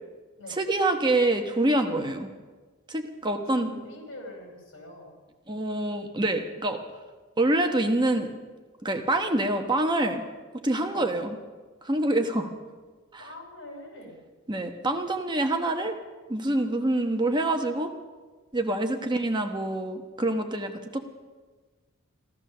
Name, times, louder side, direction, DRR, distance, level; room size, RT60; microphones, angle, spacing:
voice 1, 0.6-2.3 2.9-3.7 5.5-6.8 7.4-8.3 8.8-10.2 10.6-11.4 11.8-12.5 13.1-13.2 14.5-16.0 16.3-17.9 18.5-21.0, right 1 dB, 20° right, 5 dB, 1.1 m, -26 dB
voice 2, 3.5-5.1 10.9-11.1 12.4-12.5 13.2-14.2, left 1 dB, 65° left, 1 dB, 5.3 m, -44 dB
15.5 x 13.5 x 6.6 m, 1.4 s
head